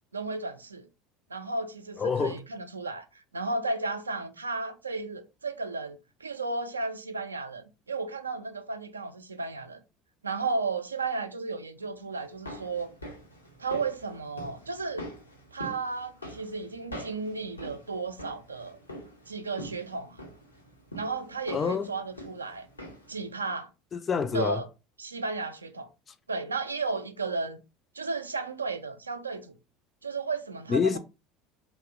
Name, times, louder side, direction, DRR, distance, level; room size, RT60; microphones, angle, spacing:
voice 1, 0.1-0.9 1.3-9.8 10.2-12.9 13.6-15.1 15.5-18.8 19.3-20.2 20.9-22.7 23.1-23.7 24.3-24.7 25.0-25.9 26.3-27.6 27.9-29.5 30.0-31.0, right 3 dB, 80° right, 0.4 m, -34 dB
voice 2, 2.0-2.4 21.5-21.9 23.9-24.6 30.7-31.0, left 5 dB, 30° left, 0.4 m, -27 dB
sound 1, 12.2-23.2 23.5-23.6, equal, 85° left, 0.6 m, -44 dB
2.7 x 2.0 x 2.5 m
figure-of-eight pair, 70°, 0 cm